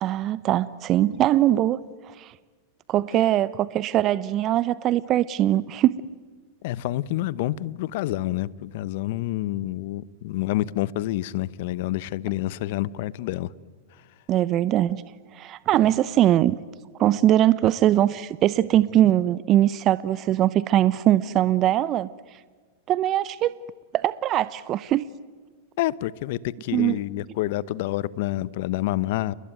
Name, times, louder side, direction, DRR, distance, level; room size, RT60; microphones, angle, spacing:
voice 1, 0.0-1.8 2.2-2.3 2.9-5.9 14.3-15.0 15.3-16.6 17.0-22.1 22.9-23.5 23.9-25.0 26.7-27.0, right 13 dB, 40° right, 0.8 m, -21 dB
voice 2, 6.6-13.5 25.8-29.3, left 15 dB, 60° left, 0.9 m, -28 dB
29.0 x 21.5 x 9.2 m
hypercardioid pair, 100°, 0 cm